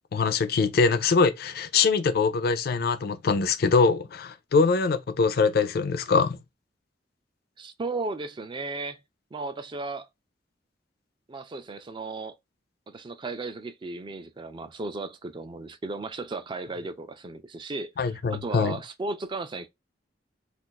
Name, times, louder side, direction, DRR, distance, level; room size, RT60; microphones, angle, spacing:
voice 1, 0.0-6.4 18.0-18.8, left 4 dB, 60° left, 0.4 m, -23 dB
voice 2, 7.6-9.0 9.3-10.1 11.3-12.3 12.9-17.9 18.3-19.7, right 3 dB, 25° right, 0.3 m, -35 dB
2.4 x 2.3 x 3.8 m
head